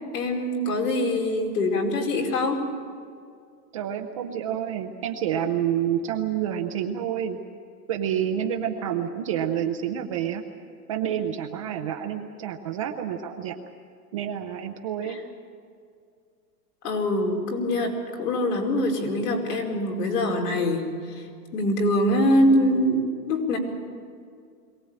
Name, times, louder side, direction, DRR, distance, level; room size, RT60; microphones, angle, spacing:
voice 1, 0.1-2.6 15.1-15.2 16.8-21.2 21.5-23.6, left 1 dB, 70° left, 1 dB, 4.9 m, -24 dB
voice 2, 3.7-7.4 7.9-10.4 10.9-13.6 14.1-15.2, right 9 dB, 20° right, 4 dB, 0.6 m, -28 dB
22.5 x 18.0 x 8.7 m, 2.3 s
supercardioid pair, 165°, 48 cm